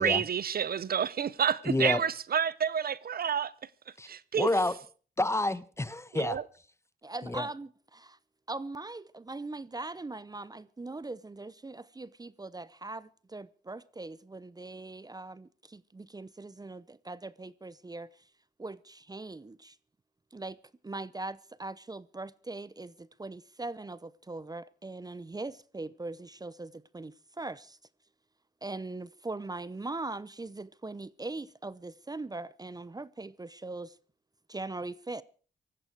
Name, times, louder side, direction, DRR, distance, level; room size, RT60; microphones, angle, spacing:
voice 1, 0.0-3.5 4.1-4.5 6.1-6.4, right 8 dB, 60° right, 0.7 m, -29 dB
voice 2, 1.6-2.0 4.0-4.1 4.3-4.8 5.2-6.4 7.2-7.5, left 2 dB, 15° left, 1.0 m, -29 dB
voice 3, 7.0-8.2 8.5-18.3 18.6-19.8 20.3-20.6 20.8-27.8 28.6-34.0 34.5-35.2, right 2 dB, 20° right, 0.7 m, -41 dB
18.0 x 14.5 x 4.7 m
cardioid pair, 65°, 18 cm